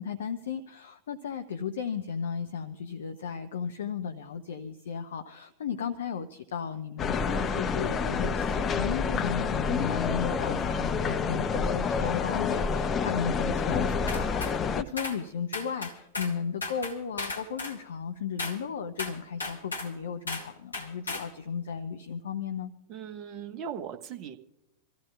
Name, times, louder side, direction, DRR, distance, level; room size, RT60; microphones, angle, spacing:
voice 1, 0.0-22.7, left 7 dB, 65° left, 8 dB, 0.7 m, -35 dB
sound 1, 7.0-14.8, left 5 dB, 25° left, 0.7 m, -28 dB
sound 2, 14.1-14.6 15.0-15.2 15.5-16.4 16.6-17.8 18.4-18.6 19.0-19.9 20.3-20.5 20.7-21.3, left 2 dB, 80° left, 2.1 m, -35 dB
voice 2, 22.9-24.4, right 8 dB, 35° right, 7 dB, 1.2 m, -38 dB
26.5 x 14.5 x 2.3 m, 0.88 s
figure-of-eight pair, 90°, 0 cm